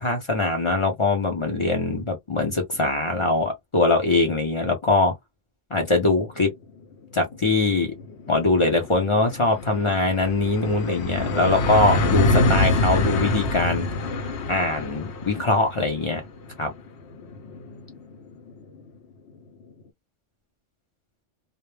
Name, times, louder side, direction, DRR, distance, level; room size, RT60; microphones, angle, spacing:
voice 1, 0.0-5.1 5.7-6.5 7.1-7.9 8.3-13.9 14.5-16.2 16.6-16.7, left 2 dB, 40° left, 0.5 m, -22 dB
sound 1, 6.9-7.0 7.3-18.7, left 2 dB, 65° left, 0.8 m, -26 dB
2.1 x 2.0 x 3.1 m
omnidirectional pair, 1.3 m